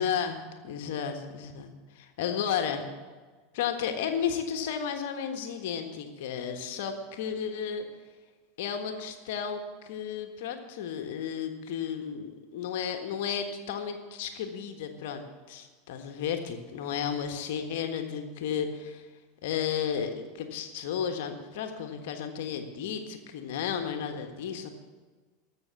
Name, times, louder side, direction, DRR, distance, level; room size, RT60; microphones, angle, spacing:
voice 1, 0.0-1.7 1.9-2.8 3.5-7.8 8.6-15.2 15.5-19.0 19.4-20.1 20.3-24.7, left 8 dB, 60° left, 6 dB, 1.5 m, -33 dB
15.0 x 6.5 x 8.3 m, 1.4 s
figure-of-eight pair, 85°, 0 cm